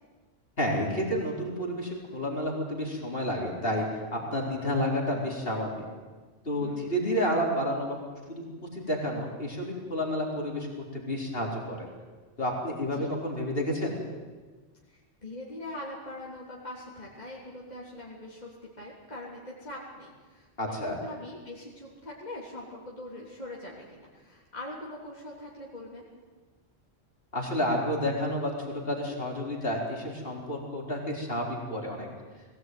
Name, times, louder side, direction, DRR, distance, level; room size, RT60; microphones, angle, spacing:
voice 1, 0.6-5.9 6.4-8.0 8.3-8.4 8.7-10.7 10.9-11.9 12.4-14.0 20.6-21.0 27.3-32.1, equal, 50° left, -1 dB, 4.5 m, -30 dB
voice 2, 6.6-7.0 12.9-13.1 14.9-26.0, left 1 dB, 35° left, -5 dB, 3.6 m, -42 dB
21.5 x 17.5 x 9.4 m, 1.4 s
omnidirectional pair, 1.3 m